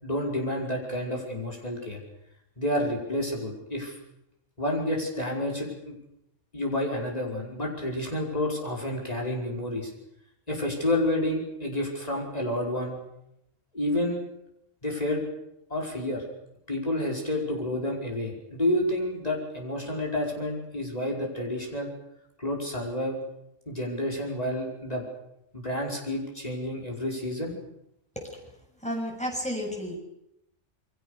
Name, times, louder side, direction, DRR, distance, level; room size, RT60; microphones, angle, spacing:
voice 1, 0.0-2.0 2.6-4.0 4.6-6.0 6.5-9.9 10.5-13.0 13.7-14.2 14.8-15.2 15.7-16.2 16.7-21.9 22.4-23.2 23.7-25.0 25.5-27.5, left 1 dB, 30° left, -1 dB, 5.6 m, -29 dB
voice 2, 28.8-30.0, equal, 5° left, 0 dB, 7.3 m, -31 dB
28.5 x 23.5 x 6.8 m, 0.82 s
omnidirectional pair, 1.3 m